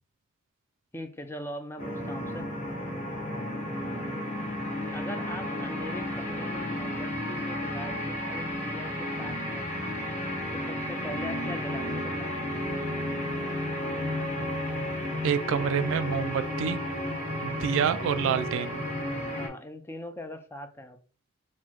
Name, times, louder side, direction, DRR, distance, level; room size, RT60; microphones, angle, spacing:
voice 1, 0.9-2.5 4.9-9.7 10.5-12.3 19.3-21.0, left 1 dB, 10° left, 0.4 m, -41 dB
sound 1, 1.8-19.5, left 1 dB, 35° left, 1.5 m, -32 dB
voice 2, 15.2-16.8 17.4-18.8, right 7 dB, 65° right, 0.3 m, -27 dB
4.3 x 2.2 x 4.4 m
head